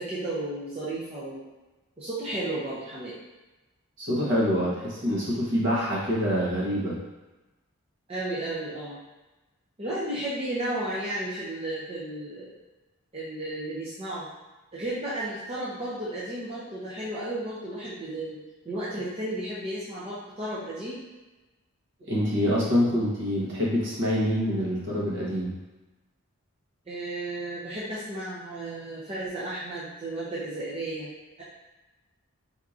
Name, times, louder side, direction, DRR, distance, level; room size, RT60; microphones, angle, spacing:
voice 1, 0.0-1.4 2.0-3.2 8.1-9.0 9.8-12.6 13.1-14.3 14.7-21.0 26.9-31.1, right 1 dB, 25° right, -9 dB, 0.5 m, -33 dB
voice 2, 4.0-7.0 22.1-25.5, equal, 55° right, -6 dB, 1.1 m, -26 dB
4.6 x 2.7 x 2.4 m, 1.1 s
head